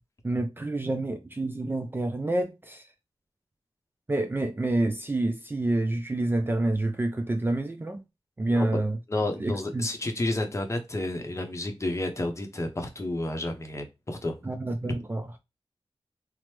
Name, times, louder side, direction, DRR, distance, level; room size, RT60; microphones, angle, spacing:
voice 1, 0.2-2.8 4.1-8.0 8.4-9.0 9.4-9.9 14.4-15.3, right 2 dB, 20° right, 0.3 m, -28 dB
voice 2, 9.1-14.4, left 1 dB, 30° left, 0.7 m, -31 dB
3.0 x 2.0 x 3.1 m
wide cardioid pair, 85°, 10 cm